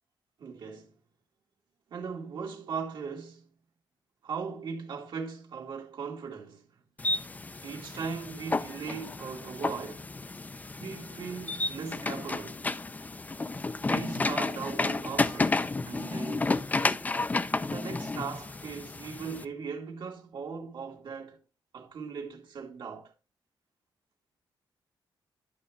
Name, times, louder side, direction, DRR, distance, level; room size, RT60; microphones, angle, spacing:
voice 1, 0.4-0.9 1.9-3.5 4.2-6.6 7.6-10.0 10.8-12.6 13.8-16.7 17.7-21.4 21.7-23.1, right 5 dB, 65° right, 2.0 m, -39 dB
sound 1, 7.0-19.4, left 3 dB, 20° left, 0.5 m, -32 dB
11.5 x 5.9 x 3.3 m
cardioid pair, 120°, 8 cm